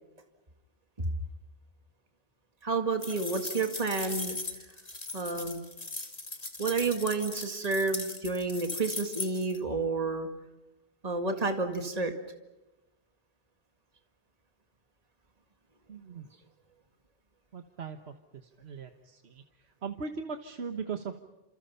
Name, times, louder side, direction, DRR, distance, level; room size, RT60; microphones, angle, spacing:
voice 1, 2.6-4.4 5.1-5.6 6.6-10.3 11.0-12.1, right 3 dB, 40° right, 5 dB, 2.2 m, -30 dB
sound 1, 3.0-9.6, left 2 dB, 40° left, 2.7 m, -39 dB
voice 2, 15.9-16.2 17.5-18.0 18.6-19.4 19.8-21.2, right 5 dB, 80° right, 6 dB, 1.5 m, -38 dB
29.0 x 28.0 x 5.7 m, 1.0 s
omnidirectional pair, 1.1 m